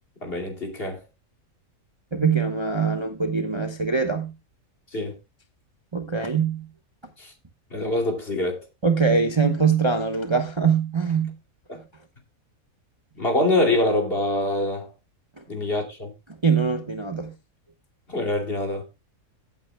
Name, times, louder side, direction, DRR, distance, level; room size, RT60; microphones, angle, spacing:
voice 1, 0.2-1.0 4.9-5.1 7.2-7.3 7.7-8.6 11.7-11.8 13.2-14.9 15.5-16.1 18.1-18.8, left 1 dB, 45° left, 2.9 m, -25 dB
voice 2, 2.1-4.3 5.9-6.7 8.8-11.3 15.4-15.5 16.4-17.3, right 5 dB, 20° right, 1.0 m, -23 dB
15.5 x 8.7 x 2.2 m
omnidirectional pair, 1.4 m